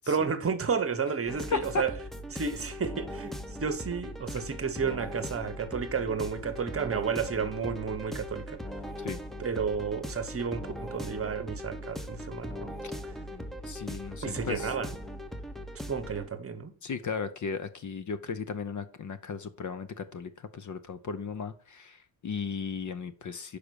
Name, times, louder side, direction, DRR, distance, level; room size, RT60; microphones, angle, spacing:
voice 1, 0.1-1.9 2.3-8.6 9.4-12.7 13.0-13.1 14.2-14.9 15.9-16.7, right 6 dB, 30° right, 1.0 m, -32 dB
sound 1, 1.3-16.3, equal, ahead, 0.7 m, -39 dB
voice 2, 1.5-1.8 9.0-9.2 13.3-14.7 16.8-23.6, left 5 dB, 40° left, 0.7 m, -36 dB
6.0 x 5.0 x 6.8 m
cardioid pair, 115°, 46 cm